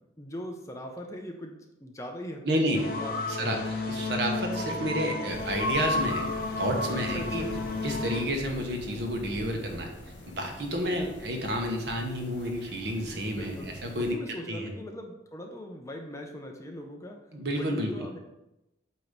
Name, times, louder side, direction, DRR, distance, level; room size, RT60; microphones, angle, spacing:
voice 1, 0.2-2.4 3.0-3.8 7.1-7.5 13.2-13.7 14.0-18.2, left 1 dB, 15° left, 2 dB, 0.6 m, -40 dB
voice 2, 2.4-2.9 3.3-6.3 6.6-7.5 7.8-9.9 10.3-13.5 13.8-14.2 14.5-14.7 17.3-17.9, equal, 60° right, 2 dB, 1.2 m, -30 dB
sound 1, 2.7-8.2, left 2 dB, 50° left, 0.7 m, -31 dB
sound 2, 5.3-14.1, left 1 dB, 65° left, 2.1 m, -45 dB
8.3 x 3.0 x 5.2 m, 0.94 s
head